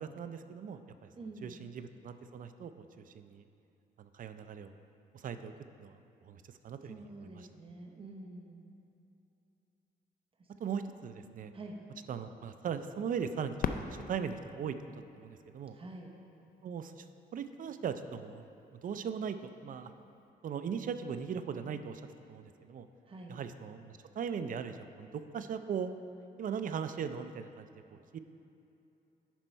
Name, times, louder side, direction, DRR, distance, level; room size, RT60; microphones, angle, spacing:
voice 1, 0.0-1.1 1.4-3.4 4.0-4.7 5.1-5.5 5.8-7.0 7.3-7.5 10.6-11.5 12.1-14.8 15.2-15.8 16.6-17.1 17.3-18.4 18.8-19.9 20.4-22.0 22.3-22.9 23.3-25.9 26.4-28.2, right 7 dB, 55° right, 10 dB, 0.5 m, -39 dB
voice 2, 1.2-1.7 6.8-8.7 10.4-10.5 11.5-11.8 15.7-16.1 23.0-23.4, right 2 dB, 30° right, 1 dB, 1.0 m, -47 dB
Fireworks, 13.6-16.3 17.0-17.1 17.8-18.3 20.2-20.3, left 6 dB, 55° left, 0.4 m, -40 dB
10.5 x 5.4 x 4.5 m, 2.7 s
cardioid pair, 110°, 17 cm